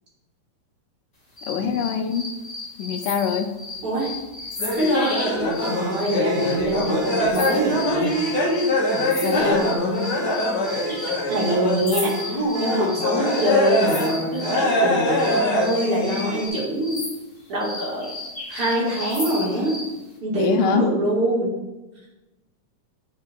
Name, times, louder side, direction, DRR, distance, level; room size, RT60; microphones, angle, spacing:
sound 1, 1.4-14.6 15.2-19.9, left 2 dB, 25° left, 2.6 m, -35 dB
voice 1, 1.5-2.3 2.8-3.6 8.9-9.6 20.3-20.9, left 7 dB, 85° left, 7 dB, 2.2 m, -24 dB
sound 2, 4.6-12.0 12.3-14.1 14.4-16.5, left 1 dB, 65° left, 1.0 m, -23 dB
voice 2, 4.7-8.1 9.3-10.0 11.3-17.0 17.5-18.0 18.5-19.8 20.2-21.5, right 1 dB, 45° right, -5 dB, 2.4 m, -24 dB
sound 3, 5.6-15.5, right 4 dB, 65° right, 2.4 m, -35 dB
9.7 x 5.5 x 3.4 m, 1.0 s
omnidirectional pair, 3.8 m